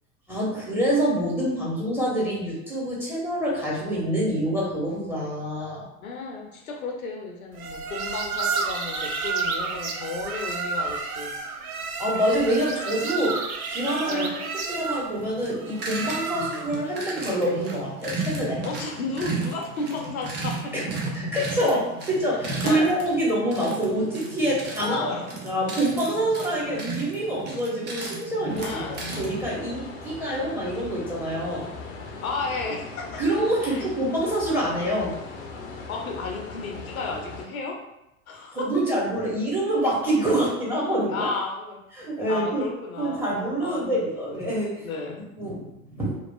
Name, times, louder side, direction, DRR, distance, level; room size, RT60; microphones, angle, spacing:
voice 1, 0.3-5.9 12.0-13.4 13.7-14.3 14.7-18.6 20.7-20.8 21.1-25.1 25.4-28.8 29.1-31.7 33.2-35.2 38.5-41.3 41.9-42.7 43.0-44.9 45.4-46.2, right 1 dB, 5° right, -6 dB, 1.0 m, -26 dB
voice 2, 6.0-11.3 14.1-14.4 16.3-16.5 18.6-20.7 21.2-21.7 22.6-23.0 24.8-25.3 26.6-26.9 28.6-29.1 32.2-33.2 33.6-33.9 35.9-37.8 38.3-38.7 41.1-41.8 42.3-44.0 44.8-45.2, left 3 dB, 75° left, 1 dB, 0.7 m, -33 dB
sound 1, 7.6-16.8, right 4 dB, 75° right, 0.5 m, -31 dB
sound 2, 15.1-29.5, right 3 dB, 25° right, 0.6 m, -35 dB
sound 3, 28.5-37.5, left 3 dB, 35° left, 0.6 m, -39 dB
3.0 x 2.4 x 2.2 m, 0.87 s
figure-of-eight pair, 85°, 43 cm